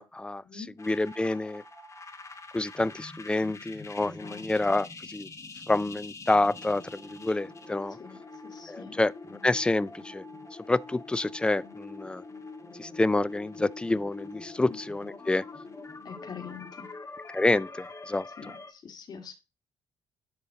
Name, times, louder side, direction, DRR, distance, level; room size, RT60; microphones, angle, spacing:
voice 1, 0.0-0.4 0.8-1.6 2.5-5.3 5.7-8.0 8.7-10.2 10.7-12.2 12.8-15.4 17.3-18.3, left 2 dB, 10° left, 0.3 m, -28 dB
sound 1, 0.8-18.7, left 3 dB, 35° left, 1.8 m, -45 dB
voice 2, 4.0-4.8 8.0-9.0 14.6-14.8 16.0-16.9 18.4-19.3, left 6 dB, 50° left, 2.2 m, -45 dB
9.9 x 3.9 x 3.9 m
cardioid pair, 90°, 9 cm